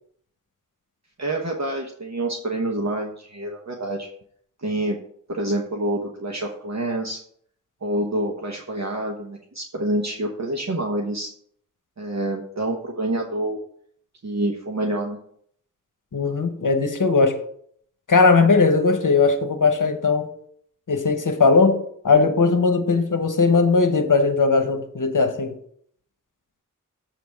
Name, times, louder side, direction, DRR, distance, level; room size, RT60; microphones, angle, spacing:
voice 1, 1.2-4.1 4.6-5.0 5.3-7.2 7.8-11.3 12.0-13.6 14.2-15.2, right 1 dB, 55° right, 1.0 m, -27 dB
voice 2, 16.1-17.4 18.1-20.3 20.9-25.6, left 4 dB, 70° left, 0.9 m, -19 dB
7.6 x 3.5 x 6.4 m
wide cardioid pair, 50°, 32 cm